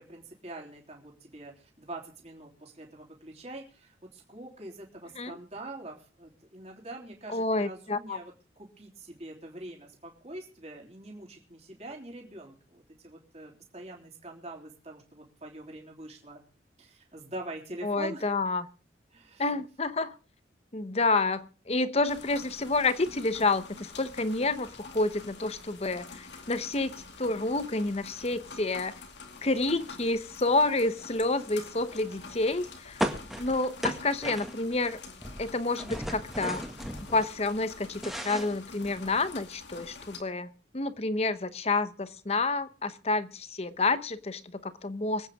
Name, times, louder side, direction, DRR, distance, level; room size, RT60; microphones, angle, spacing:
voice 1, 0.0-16.4 16.8-18.3 19.1-19.5 31.9-32.4, right 2 dB, 35° right, -1 dB, 3.4 m, -44 dB
voice 2, 7.3-8.2 17.8-18.7 19.4-20.1 20.7-28.9 29.4-33.0 33.4-35.0 35.4-36.6 37.1-45.3, left 3 dB, 35° left, 14 dB, 0.9 m, -29 dB
sound 1, 22.1-40.2, left 4 dB, 70° left, 2.4 m, -47 dB
sound 2, 33.0-34.9 35.1-37.3 37.7-39.3, equal, ahead, 1.9 m, -35 dB
25.0 x 9.0 x 3.6 m, 0.40 s
head